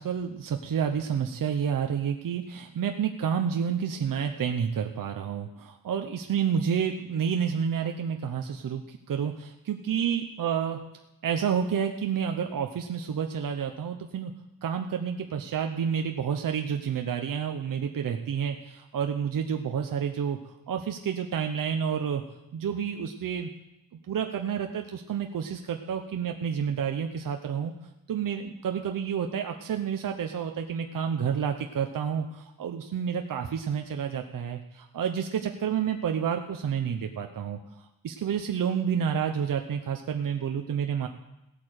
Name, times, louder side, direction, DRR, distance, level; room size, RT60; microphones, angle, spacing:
voice 1, 0.0-10.8 11.2-14.3 14.6-20.4 20.7-22.2 22.5-23.5 24.1-27.7 28.1-37.6 38.0-41.1, right 7 dB, 65° right, 5 dB, 1.0 m, -29 dB
16.5 x 8.8 x 6.5 m, 0.91 s
wide cardioid pair, 150°, 35 cm